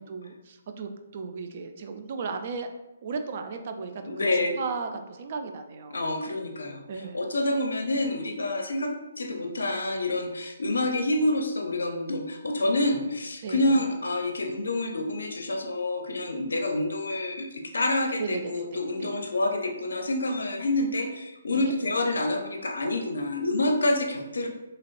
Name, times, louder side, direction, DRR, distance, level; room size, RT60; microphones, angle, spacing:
voice 1, 0.0-2.7 3.0-4.3 4.6-6.0 6.9-7.3 13.4-13.8 18.2-19.1 21.5-21.7, right 4 dB, 45° right, 7 dB, 0.3 m, -35 dB
voice 2, 4.1-4.5 5.9-17.5 17.7-24.5, left 2 dB, 75° left, 3 dB, 0.5 m, -27 dB
2.9 x 2.8 x 2.4 m, 0.97 s
figure-of-eight pair, 140°, 0 cm